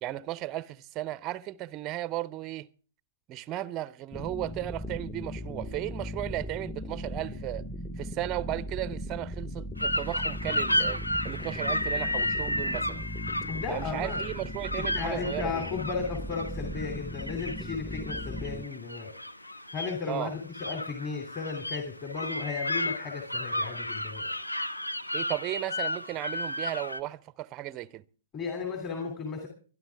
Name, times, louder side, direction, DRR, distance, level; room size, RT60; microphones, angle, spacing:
voice 1, 0.0-2.7 3.3-7.6 8.0-13.0 13.7-15.6 20.1-20.3 25.1-28.0, right 14 dB, 25° right, 0.6 m, -35 dB
sound 1, 4.1-18.6, equal, 5° left, 1.1 m, -38 dB
sound 2, 9.8-27.0, left 1 dB, 85° left, 0.9 m, -33 dB
voice 2, 13.5-14.2 14.7-19.2 19.7-24.3 28.3-29.5, left 5 dB, 25° left, 2.7 m, -35 dB
24.0 x 11.0 x 3.5 m
figure-of-eight pair, 115°, 0 cm